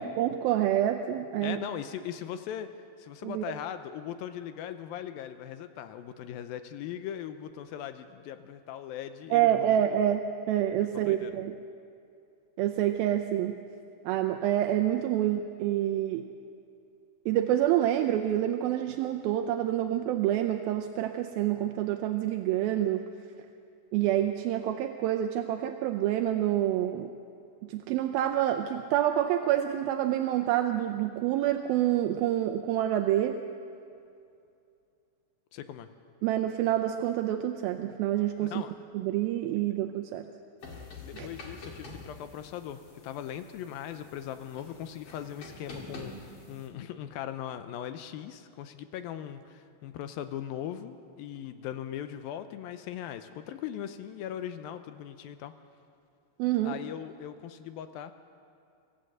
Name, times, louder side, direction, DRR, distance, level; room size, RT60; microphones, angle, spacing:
voice 1, 0.0-1.6 3.2-3.4 9.3-11.5 12.6-13.6 14.0-16.2 17.3-23.0 23.9-27.1 27.6-33.4 36.2-38.5 38.9-40.2 41.2-41.3 56.4-56.8, right 12 dB, 80° right, 5 dB, 2.4 m, -27 dB
voice 2, 1.4-2.7 3.0-10.0 10.9-11.4 35.5-35.9 38.4-38.7 41.0-55.5 56.6-58.1, left 10 dB, 80° left, 10 dB, 2.4 m, -39 dB
sound 1, 40.6-46.7, left 3 dB, 40° left, 2.8 m, -46 dB
25.0 x 14.5 x 7.8 m, 2.5 s
omnidirectional pair, 4.4 m